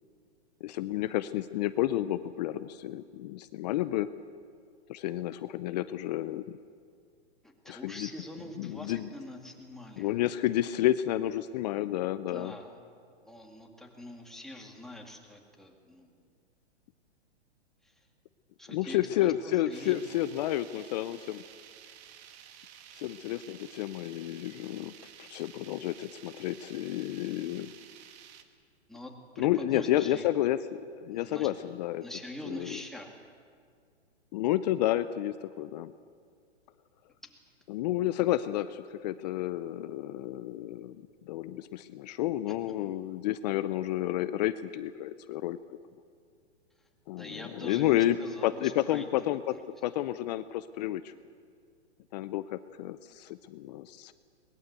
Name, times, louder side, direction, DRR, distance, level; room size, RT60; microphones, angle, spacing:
voice 1, 0.6-4.1 4.9-6.6 7.7-8.1 8.6-9.1 10.0-12.5 18.7-21.4 22.9-24.9 25.2-27.7 29.4-32.0 32.4-32.8 34.3-35.9 37.7-45.6 47.1-49.6 49.8-51.1 52.1-54.1, left 14 dB, 35° left, 13 dB, 0.6 m, -31 dB
voice 2, 7.4-10.1 12.3-12.7 13.3-16.1 17.8-18.0 18.6-20.2 27.2-27.6 28.9-30.3 31.1-31.5 32.0-33.2 37.2-37.4 47.2-49.0, left 1 dB, ahead, 1 dB, 2.4 m, -44 dB
sound 1, 19.7-28.4, right 9 dB, 40° right, 1.9 m, -52 dB
22.0 x 20.5 x 8.2 m, 2.2 s
hypercardioid pair, 140°, 35 cm